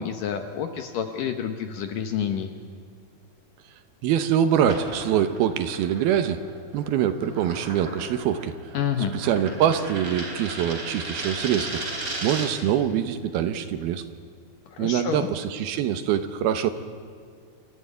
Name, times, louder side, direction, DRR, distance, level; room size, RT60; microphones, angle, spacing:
voice 1, 0.0-2.5 8.7-9.1 14.7-15.3, left 8 dB, 70° left, 7 dB, 2.2 m, -28 dB
voice 2, 4.0-6.4 6.7-8.5 9.1-11.8 12.2-14.0 14.8-16.7, right 9 dB, 75° right, 10 dB, 2.6 m, -24 dB
sound 1, 4.6-12.7, right 2 dB, 20° right, 3.7 m, -36 dB
28.5 x 13.5 x 9.4 m, 2.3 s
omnidirectional pair, 4.9 m